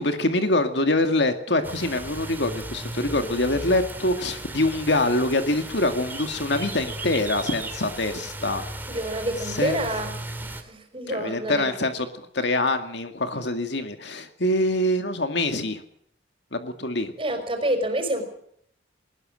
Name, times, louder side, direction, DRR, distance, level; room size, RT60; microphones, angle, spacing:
voice 1, 0.0-8.6 9.5-9.8 11.1-12.1 12.3-15.8 16.5-17.1, left 2 dB, 65° left, 7 dB, 2.1 m, -24 dB
sound 1, 1.6-10.6, right 1 dB, 10° right, 2.5 m, -36 dB
voice 2, 8.9-11.7 17.2-18.2, right 1 dB, 30° right, 7 dB, 5.1 m, -28 dB
20.5 x 20.0 x 6.4 m, 0.68 s
head